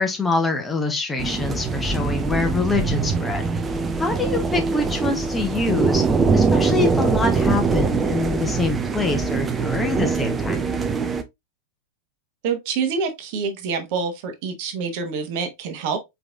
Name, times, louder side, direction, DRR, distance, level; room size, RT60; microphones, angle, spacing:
voice 1, 0.0-3.5 4.0-6.0 6.3-10.8, left 3 dB, 10° left, 1.0 m, -25 dB
sound 1, 1.2-11.2, right 4 dB, 15° right, 0.6 m, -22 dB
voice 2, 12.4-16.0, right 5 dB, 45° right, 1.1 m, -26 dB
4.8 x 3.9 x 2.4 m
figure-of-eight pair, 90°, 0 cm